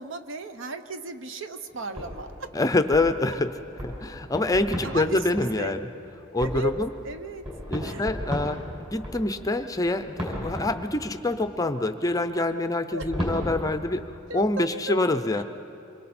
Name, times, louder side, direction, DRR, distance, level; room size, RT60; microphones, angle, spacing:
voice 1, 0.0-2.5 4.8-5.8 6.4-6.7 7.0-7.4 7.8-8.0 12.9-13.1 14.3-15.0, right 3 dB, 60° right, 9 dB, 0.8 m, -35 dB
sound 1, 1.7-5.7 6.4-11.2 13.0-13.5, equal, 25° right, 5.9 m, -35 dB
voice 2, 2.5-3.6 3.8-5.8 6.3-6.9 7.7-8.6 8.9-14.1 14.3-15.4, left 2 dB, 15° left, 9 dB, 0.5 m, -26 dB
26.5 x 23.0 x 4.3 m, 2.9 s
head